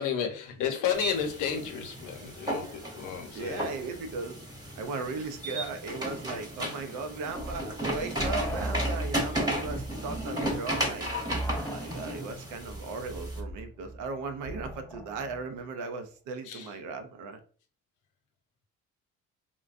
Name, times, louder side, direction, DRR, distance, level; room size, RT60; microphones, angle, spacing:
voice 1, 0.0-3.7 16.4-16.7, left 8 dB, 85° left, 4 dB, 0.8 m, -32 dB
sound 1, 0.9-13.4, right 1 dB, 15° right, 1.0 m, -35 dB
voice 2, 3.3-4.4 4.8-11.1 11.5-17.4, right 4 dB, 85° right, 7 dB, 0.6 m, -37 dB
sound 2, 7.3-15.5, right 1 dB, 10° left, 0.4 m, -37 dB
3.7 x 2.2 x 2.4 m, 0.40 s
cardioid pair, 90°, 30 cm